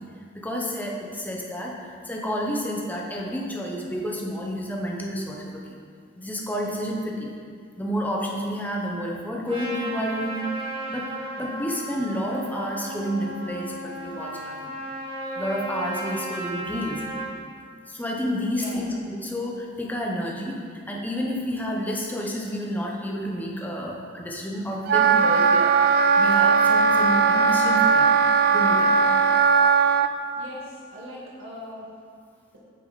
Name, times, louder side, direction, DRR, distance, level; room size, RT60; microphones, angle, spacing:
voice 1, 0.3-1.8 2.0-5.6 6.2-7.3 7.8-10.6 10.9-11.1 11.4-14.7 15.2-17.0 17.9-20.6 20.9-28.1 28.5-29.2, equal, 10° left, -2 dB, 0.9 m, -30 dB
Trumpet, 9.5-17.3, right 1 dB, 25° right, 2.0 m, -34 dB
voice 2, 18.4-18.8 30.4-31.9, equal, 90° right, -5 dB, 1.7 m, -40 dB
Wind instrument woodwind instrument, 24.9-30.1, right 5 dB, 50° right, 0.3 m, -18 dB
8.7 x 6.7 x 4.1 m, 2.2 s
head